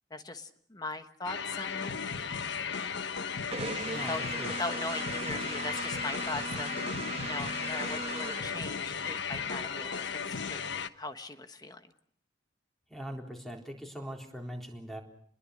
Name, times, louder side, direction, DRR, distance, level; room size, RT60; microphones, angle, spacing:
voice 1, 0.1-1.9 4.1-4.3 4.6-10.6 10.9-11.9, left 2 dB, 20° left, 8 dB, 1.3 m, -39 dB
sound 1, 1.2-10.9, left 6 dB, 70° left, 1.0 m, -35 dB
sound 2, 3.5-9.1, right 3 dB, 30° right, 1.5 m, -39 dB
voice 2, 3.9-4.5 12.9-15.0, equal, ahead, 1 dB, 3.8 m, -41 dB
29.5 x 21.5 x 6.5 m, 0.65 s
head